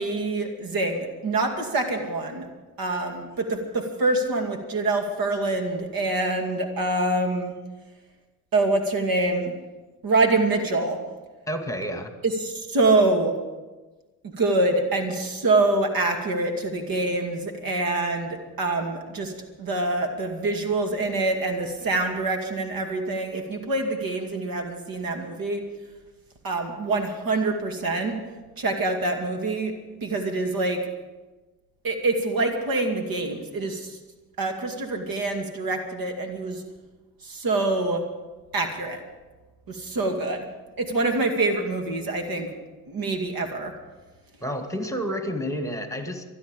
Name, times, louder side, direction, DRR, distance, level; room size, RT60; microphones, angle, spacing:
voice 1, 0.0-2.5 2.8-7.5 8.5-9.5 10.0-11.0 12.2-13.3 14.2-19.3 19.6-25.6 26.4-28.2 28.6-29.7 30.0-30.8 31.8-34.0 34.4-36.6 37.2-38.1 38.5-39.0 39.7-40.5 40.8-42.5 42.9-43.7, right 2 dB, 55° right, 5 dB, 2.4 m, -25 dB
voice 2, 11.5-12.1 44.4-46.2, equal, 5° left, 6 dB, 2.1 m, -30 dB
25.0 x 9.4 x 5.3 m, 1.2 s
hypercardioid pair, 55°, 42 cm